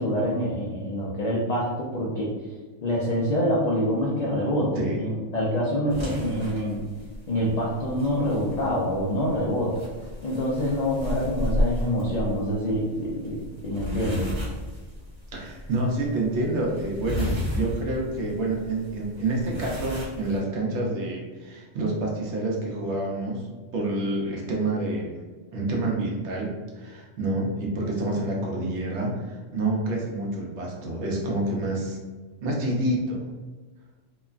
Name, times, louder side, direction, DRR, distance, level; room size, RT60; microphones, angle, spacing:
voice 1, 0.0-2.3 2.8-6.8 7.3-9.8 10.2-14.3, equal, 70° left, -4 dB, 0.3 m, -26 dB
sound 1, 5.9-20.4, left 1 dB, 25° right, 0.9 m, -34 dB
voice 2, 15.3-23.5 23.7-25.1 25.5-32.0 32.4-33.2, right 2 dB, 70° right, -1 dB, 0.9 m, -28 dB
3.0 x 2.1 x 2.4 m, 1.3 s
omnidirectional pair, 1.2 m